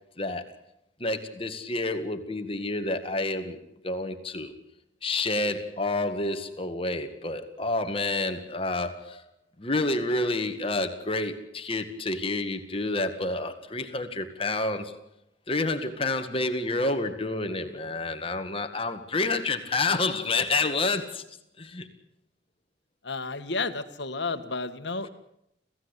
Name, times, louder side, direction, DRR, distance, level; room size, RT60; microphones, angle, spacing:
voice 1, 1.0-3.6 3.8-4.6 5.0-9.2 9.6-15.0 15.5-21.2 21.6-21.9, left 2 dB, 30° left, 7 dB, 2.0 m, -29 dB
voice 2, 23.0-25.1, left 3 dB, 65° left, 9 dB, 1.7 m, -31 dB
26.5 x 16.0 x 8.3 m, 0.80 s
head